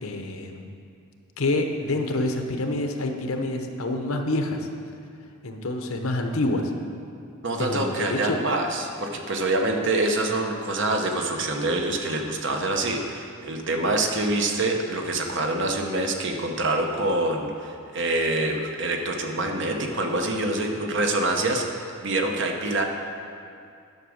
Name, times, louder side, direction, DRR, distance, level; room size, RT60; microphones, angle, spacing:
voice 1, 0.0-0.6 1.4-4.7 5.4-6.7 7.6-8.4, left 2 dB, 75° left, 4 dB, 0.9 m, -27 dB
voice 2, 7.4-21.6 22.0-22.9, right 2 dB, 55° right, 3 dB, 1.0 m, -26 dB
10.5 x 6.1 x 6.4 m, 2.4 s
head